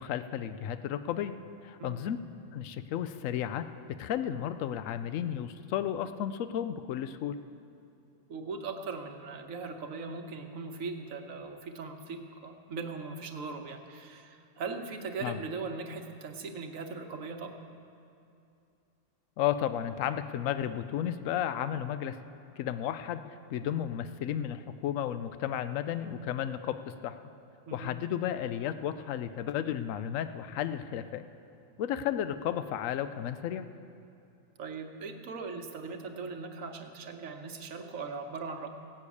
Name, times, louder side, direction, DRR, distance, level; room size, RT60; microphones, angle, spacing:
voice 1, 0.0-1.3 1.6-2.2 2.5-3.6 4.0-7.4 15.2-15.3 19.4-22.2 22.6-23.2 23.5-26.7 27.0-27.1 27.7-31.2 31.8-33.7, left 10 dB, 80° left, 11 dB, 1.0 m, -33 dB
voice 2, 1.8-2.2 8.3-17.6 27.7-27.9 34.6-38.7, right 4 dB, 85° right, 4 dB, 1.4 m, -39 dB
16.5 x 6.6 x 8.4 m, 2.6 s
omnidirectional pair, 1.4 m